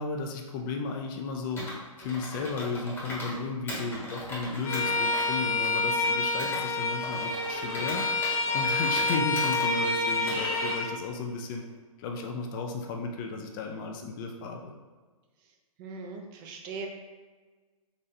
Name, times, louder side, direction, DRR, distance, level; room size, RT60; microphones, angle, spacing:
voice 1, 0.0-1.6 2.0-8.1 8.5-11.6 12.0-14.7, left 4 dB, 35° left, 2 dB, 0.4 m, -34 dB
Computer keyboard, 1.6-3.4 3.7-6.6 7.0-9.7 10.1-10.7, left 1 dB, 10° left, 1.0 m, -39 dB
Bowed string instrument, 4.6-10.9, left 3 dB, 75° left, 0.9 m, -28 dB
voice 2, 15.8-16.9, right 4 dB, 35° right, 1 dB, 0.5 m, -39 dB
3.9 x 3.1 x 2.6 m, 1.4 s
hypercardioid pair, 125°, 18 cm